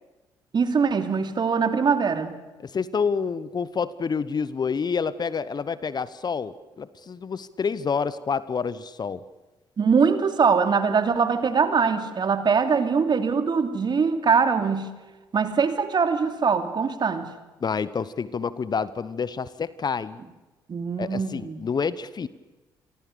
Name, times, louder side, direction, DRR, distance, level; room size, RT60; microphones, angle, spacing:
voice 1, 0.5-2.4 9.8-14.9 15.3-17.3 20.7-21.6, right 5 dB, 40° right, 8 dB, 2.9 m, -22 dB
voice 2, 2.6-9.2 17.6-20.2 21.0-22.3, left 5 dB, 40° left, 17 dB, 1.1 m, -28 dB
28.5 x 24.0 x 6.9 m, 1.2 s
hypercardioid pair, 50°, 11 cm